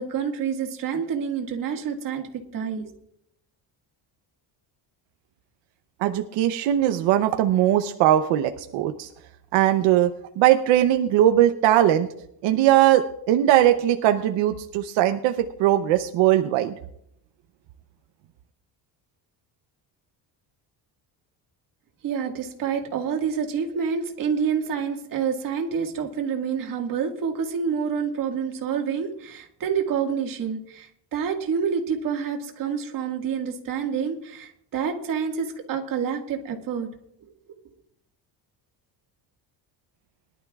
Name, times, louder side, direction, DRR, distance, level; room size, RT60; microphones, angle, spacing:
voice 1, 0.0-2.9 22.0-36.9, right 6 dB, 45° right, 2 dB, 1.9 m, -28 dB
voice 2, 6.0-9.1 9.5-12.1 12.4-16.7, right 12 dB, 85° right, 7 dB, 0.8 m, -20 dB
21.5 x 11.5 x 2.4 m, 0.74 s
cardioid pair, 170°, 44 cm